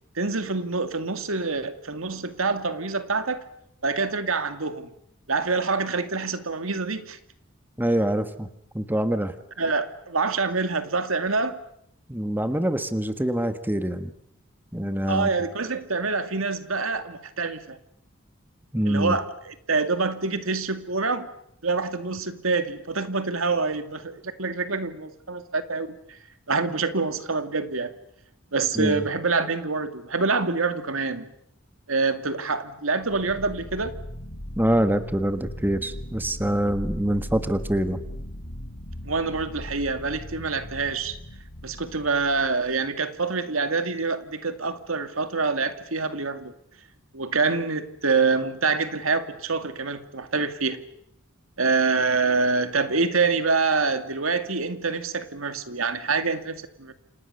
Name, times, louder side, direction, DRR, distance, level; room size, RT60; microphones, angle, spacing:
voice 1, 0.2-3.4 3.8-4.9 5.3-7.2 9.6-11.6 15.1-17.8 18.9-21.3 21.6-26.2 26.5-27.9 28.5-31.3 31.9-34.0 39.0-41.2 41.6-46.5 47.1-50.8 51.6-56.9, right 4 dB, 80° right, 2.3 m, -26 dB
voice 2, 7.8-8.5 8.7-9.3 12.1-14.1 14.7-15.3 18.7-19.2 28.7-29.0 34.6-38.0, right 1 dB, 10° right, 1.6 m, -25 dB
sound 1, 33.0-42.8, equal, 50° left, 3.0 m, -39 dB
29.5 x 27.0 x 6.8 m
head